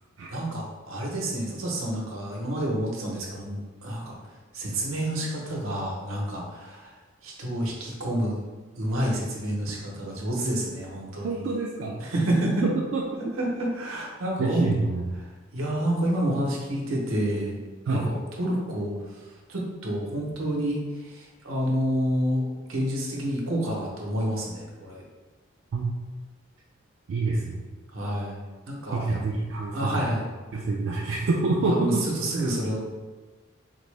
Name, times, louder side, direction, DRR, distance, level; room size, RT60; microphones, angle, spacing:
voice 1, 0.3-4.1 4.5-6.9 7.2-8.4 8.8-11.4 12.0-12.6 13.4-14.7 15.5-17.6 17.9-18.9 19.5-20.8 21.1-22.4 22.7-25.0 27.9-28.4 28.7-29.2 29.7-30.2 31.6-31.9 32.2-32.8, right 1 dB, 85° right, -2 dB, 0.8 m, -28 dB
voice 2, 11.2-12.0 12.6-13.0 14.4-15.2 17.9-18.0 25.7-26.0 27.1-27.6 28.9-30.1 30.5-32.0, right 3 dB, 65° right, -2 dB, 0.3 m, -27 dB
3.9 x 2.0 x 3.2 m, 1.3 s
head